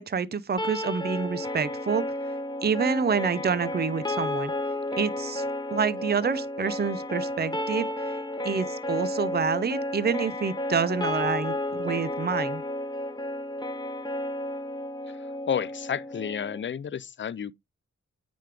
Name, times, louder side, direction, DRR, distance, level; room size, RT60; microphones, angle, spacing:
voice 1, 0.0-2.1 2.6-4.5 5.0-5.4 5.7-7.9 8.4-12.6, right 5 dB, 30° right, 0.7 m, -27 dB
sound 1, 0.6-16.6, left 1 dB, 15° left, 1.0 m, -32 dB
voice 2, 15.2-17.5, left 8 dB, 40° left, 0.4 m, -31 dB
9.3 x 5.1 x 3.4 m
wide cardioid pair, 85°, 31 cm